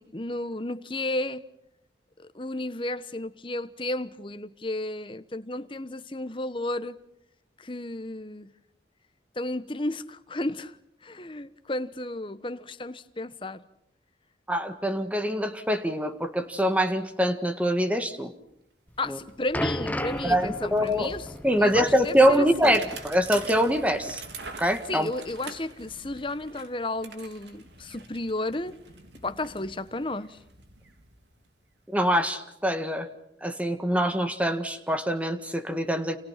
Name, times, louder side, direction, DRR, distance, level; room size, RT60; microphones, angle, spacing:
voice 1, 0.0-1.4 2.3-7.0 7.6-8.5 9.4-10.7 11.0-13.6 19.0-21.3 21.6-22.9 24.9-28.8 29.2-30.4, left 2 dB, 30° left, 1.1 m, -33 dB
voice 2, 14.5-18.3 19.1-19.2 20.2-21.1 21.4-24.2 24.6-25.1 31.9-33.1 33.4-36.2, equal, 10° right, 1.8 m, -24 dB
Bicycle, 18.5-18.6 18.9-31.8, right 4 dB, 75° right, 3.8 m, -46 dB
sound 1, 18.9-23.8 24.1-24.3 25.0-25.1, equal, 10° left, 1.0 m, -35 dB
30.0 x 29.0 x 5.9 m
head